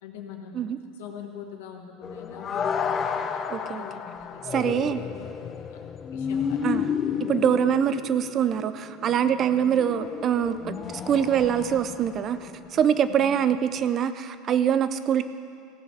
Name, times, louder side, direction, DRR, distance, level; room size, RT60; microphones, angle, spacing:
voice 1, 0.0-0.6 1.0-6.6 7.1-7.3 9.5-9.7 13.1-13.3, left 7 dB, 85° left, 2 dB, 1.4 m, -43 dB
sound 1, 2.0-13.1 13.8-13.9, left 7 dB, 30° left, 0.5 m, -32 dB
voice 2, 3.5-3.8 4.5-5.0 6.6-6.9 7.3-10.7 11.1-15.3, right 9 dB, 40° right, 12 dB, 0.5 m, -24 dB
15.5 x 5.7 x 6.5 m, 2.3 s
supercardioid pair, 115°, 0 cm